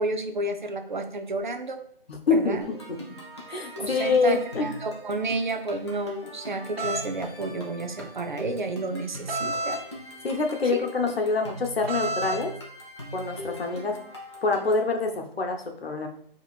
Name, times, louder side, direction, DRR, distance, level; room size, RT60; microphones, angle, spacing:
voice 1, 0.0-1.8 2.3-2.6 3.8-9.8 10.7-10.9, right 2 dB, 55° right, 6 dB, 0.6 m, -31 dB
voice 2, 2.1-2.8 3.5-4.7 10.2-12.5 13.1-14.0 14.4-16.1, left 4 dB, 80° left, 4 dB, 0.9 m, -26 dB
sound 1, 2.6-14.9, equal, 30° left, 0.7 m, -41 dB
sound 2, 6.8-7.1 9.3-9.8 11.9-12.4, right 2 dB, 85° right, 1.3 m, -29 dB
4.9 x 2.9 x 2.4 m, 0.63 s
hypercardioid pair, 175°, 30 cm